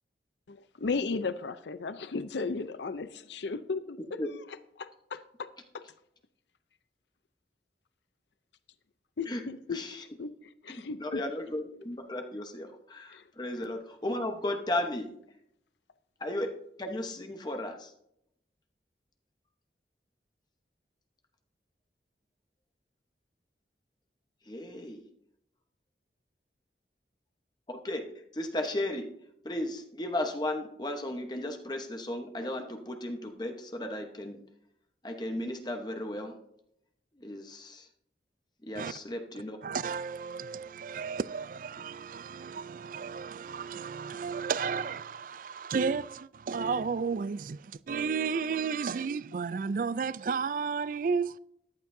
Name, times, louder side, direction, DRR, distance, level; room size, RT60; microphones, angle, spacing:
voice 1, 0.5-4.0 4.8-5.5 9.2-10.3 10.6-11.2 13.1-13.2, left 4 dB, 80° left, 0.6 m, -35 dB
voice 2, 9.3-10.0 10.7-15.1 16.2-16.5 16.8-17.9 24.5-25.0 27.7-29.1 29.4-34.4 35.0-36.4 37.2-37.9 38.6-39.6, left 1 dB, 25° left, 1.0 m, -35 dB
voice 3, 39.6-51.4, right 5 dB, 50° right, 0.3 m, -33 dB
14.0 x 12.0 x 2.7 m
head